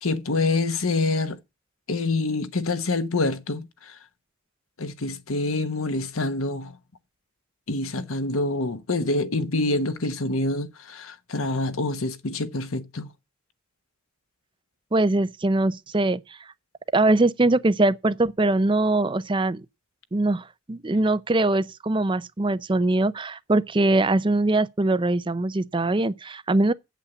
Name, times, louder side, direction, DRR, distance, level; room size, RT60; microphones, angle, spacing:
voice 1, 0.0-1.4 1.9-4.0 4.8-6.8 7.7-13.1, left 2 dB, 90° left, 1.1 m, -26 dB
voice 2, 14.9-16.2 16.9-19.6 20.1-26.7, right 2 dB, 25° right, 0.5 m, -22 dB
8.3 x 8.1 x 7.1 m
head